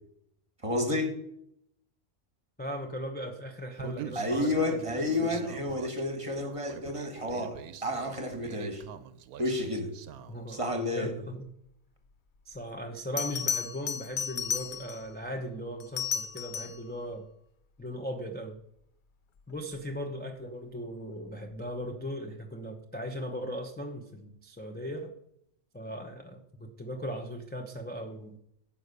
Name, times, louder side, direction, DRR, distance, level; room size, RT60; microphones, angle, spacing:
voice 1, 0.6-1.2 4.1-8.9 9.4-9.9 10.5-11.1, left 1 dB, 25° right, 5 dB, 1.4 m, -30 dB
voice 2, 2.6-5.3 10.3-11.5 12.4-17.3 17.8-18.6 19.5-25.1 25.7-28.4, equal, 10° left, 1 dB, 0.6 m, -38 dB
Human voice, 3.8-10.6, right 8 dB, 85° right, 1.1 m, -44 dB
Bell, 12.5-12.6 13.2-15.1 15.8-16.9 19.6-19.8, left 7 dB, 60° left, 0.5 m, -33 dB
10.0 x 5.6 x 6.6 m, 0.73 s
omnidirectional pair, 1.5 m